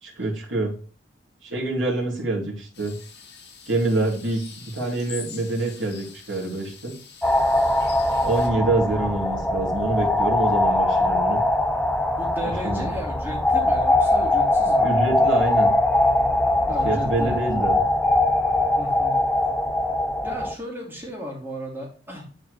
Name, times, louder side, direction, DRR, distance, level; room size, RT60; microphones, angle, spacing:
voice 1, 0.0-0.7 1.4-2.9 3.7-6.9 8.2-11.4 12.4-12.9 14.8-15.7 16.8-17.8, right 2 dB, 80° right, -3 dB, 2.9 m, -26 dB
sound 1, 2.7-8.5, left 6 dB, 55° left, 2.1 m, -44 dB
sound 2, 7.2-20.5, left 1 dB, 5° left, 0.4 m, -21 dB
voice 2, 12.2-14.9 16.7-17.4 18.8-19.2 20.2-22.2, equal, 10° right, -2 dB, 2.8 m, -35 dB
10.5 x 4.6 x 3.1 m, 0.41 s
head